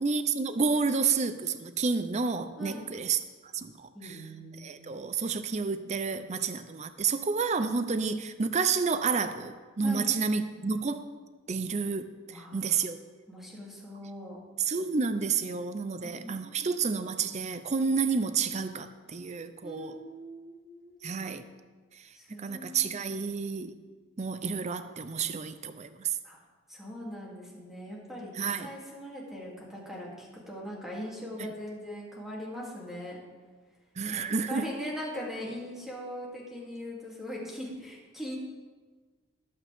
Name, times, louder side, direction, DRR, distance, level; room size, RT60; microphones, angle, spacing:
voice 1, 0.0-3.2 3.5-4.2 4.6-11.1 11.5-13.0 14.6-20.0 21.0-21.5 21.9-22.1 22.4-23.7 24.2-26.2 28.4-28.7 34.0-34.6, right 5 dB, 35° right, 10 dB, 0.5 m, -30 dB
voice 2, 3.9-4.9 9.8-10.1 12.2-12.8 13.3-14.4 15.8-16.9 19.6-21.1 22.1-23.1 26.2-26.4 26.7-33.2 34.1-38.4, equal, ahead, -5 dB, 2.8 m, -41 dB
20.5 x 8.7 x 3.6 m, 1.4 s
head